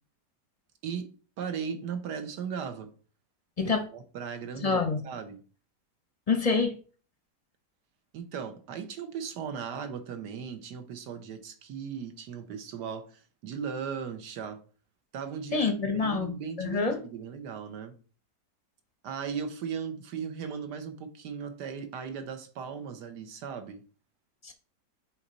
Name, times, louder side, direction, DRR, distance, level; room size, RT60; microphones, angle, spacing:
voice 1, 1.4-2.9 3.6-5.4 8.1-14.6 15.1-17.9 19.0-23.8, right 6 dB, 75° right, 1.5 m, -37 dB
voice 2, 4.6-5.0 6.3-6.8 15.5-17.0 24.4-24.5, left 4 dB, 40° left, 0.5 m, -27 dB
7.0 x 4.7 x 4.0 m
omnidirectional pair, 1.8 m